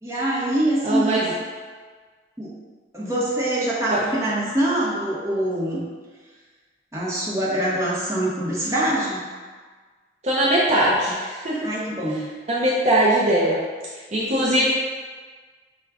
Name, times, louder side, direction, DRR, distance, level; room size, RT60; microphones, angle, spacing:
voice 1, 0.0-1.4 2.4-2.5 2.9-5.8 6.9-9.2 11.6-12.3, right 1 dB, 15° right, -7 dB, 0.9 m, -24 dB
voice 2, 0.8-1.2 3.9-4.0 10.2-11.7 12.5-13.6 14.1-14.6, right 1 dB, 35° right, -6 dB, 0.5 m, -20 dB
5.9 x 2.3 x 3.5 m, 1.5 s
head